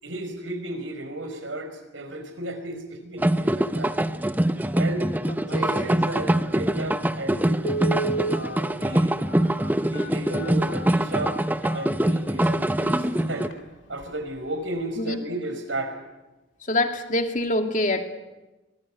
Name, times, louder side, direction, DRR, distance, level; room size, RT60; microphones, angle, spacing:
voice 1, 0.0-4.0 4.6-5.1 5.4-7.7 8.3-9.2 9.9-11.4 11.7-13.5 13.9-16.0, right 1 dB, 85° right, 7 dB, 5.2 m, -34 dB
sound 1, 3.2-13.5, right 1 dB, 10° right, 0.8 m, -24 dB
voice 2, 5.2-6.0 15.0-15.2 16.6-18.0, left 1 dB, 40° left, 5 dB, 2.5 m, -26 dB
Telephone, 7.6-12.4 13.0-13.1 13.4-13.6 14.0-14.3 14.6-14.7, right 3 dB, 75° left, 2.0 m, -32 dB
24.5 x 20.0 x 9.7 m, 1.1 s
head